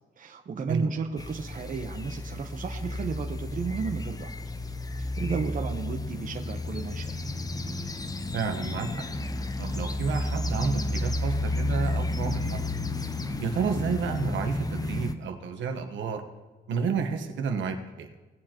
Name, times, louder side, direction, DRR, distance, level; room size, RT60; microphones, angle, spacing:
voice 1, 0.2-4.3 5.0-7.2, right 5 dB, 40° right, 4 dB, 0.9 m, -33 dB
sound 1, 1.2-15.1, left 2 dB, 20° left, 0.6 m, -32 dB
voice 2, 8.3-9.0 9.6-12.6 13.4-16.2 16.7-18.1, right 5 dB, 70° right, 5 dB, 1.2 m, -30 dB
18.0 x 7.5 x 2.9 m, 1.2 s
cardioid pair, 90°, 20 cm